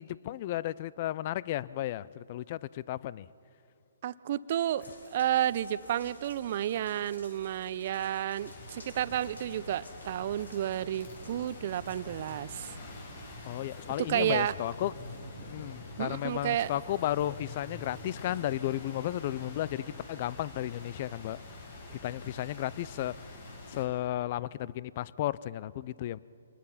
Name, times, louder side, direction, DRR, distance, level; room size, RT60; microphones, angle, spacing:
voice 1, 0.0-3.3 13.5-14.9 15.4-21.4 22.0-23.1 23.7-26.2, left 13 dB, 40° left, 21 dB, 0.4 m, -34 dB
voice 2, 4.0-12.7 14.0-14.5 16.0-16.7, right 11 dB, 45° right, 17 dB, 0.6 m, -31 dB
sound 1, 4.8-12.4, left 2 dB, 90° left, 3.6 m, -53 dB
sound 2, 8.4-23.8, left 2 dB, 55° left, 7.3 m, -47 dB
sound 3, 10.0-19.8, left 1 dB, 70° left, 5.9 m, -49 dB
25.5 x 20.0 x 5.7 m, 2.8 s
hypercardioid pair, 145°, 0 cm